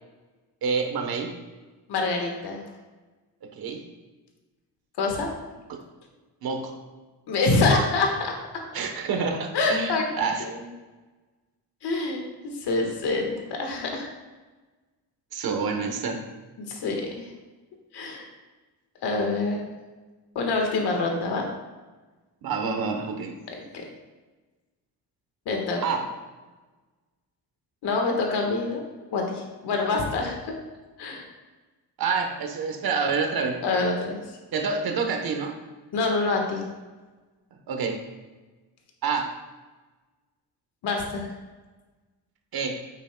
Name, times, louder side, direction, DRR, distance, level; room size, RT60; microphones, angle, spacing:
voice 1, 0.6-1.3 3.4-3.8 5.7-5.8 6.4-6.8 8.7-10.4 15.3-16.3 22.4-23.4 25.8-26.1 32.0-33.6 34.5-35.6 37.7-38.0 39.0-39.3 42.5-42.8, right 5 dB, 60° right, 5 dB, 1.1 m, -28 dB
voice 2, 1.9-2.6 5.0-5.3 7.3-8.3 9.5-10.1 10.4-10.7 11.8-14.1 16.7-17.3 17.9-18.3 19.0-19.6 20.3-21.4 23.6-23.8 25.4-25.8 27.8-28.8 29.1-30.5 31.0-31.3 33.6-34.2 35.9-36.6 40.8-41.3, left 3 dB, 75° left, 1 dB, 1.6 m, -26 dB
9.2 x 8.2 x 2.3 m, 1.2 s
cardioid pair, 160°, 41 cm